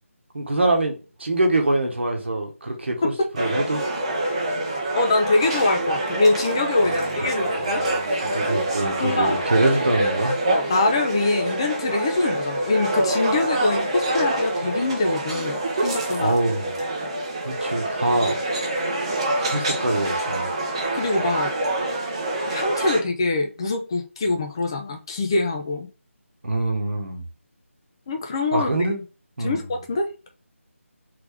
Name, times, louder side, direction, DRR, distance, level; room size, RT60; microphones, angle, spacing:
voice 1, 0.3-3.8 6.9-7.0 7.4-10.3 16.2-16.7 17.4-18.4 19.4-20.5 26.4-27.2 28.5-29.0 29.4-29.6, right 2 dB, 55° right, 1.2 m, -24 dB
sound 1, 3.4-23.0, right 1 dB, 25° right, 0.8 m, -26 dB
voice 2, 4.9-7.9 9.0-9.4 10.5-16.4 20.9-21.5 22.5-25.9 28.1-28.9 29.4-30.1, left 2 dB, 20° left, 0.6 m, -24 dB
3.9 x 3.3 x 3.4 m
figure-of-eight pair, 160°, 8 cm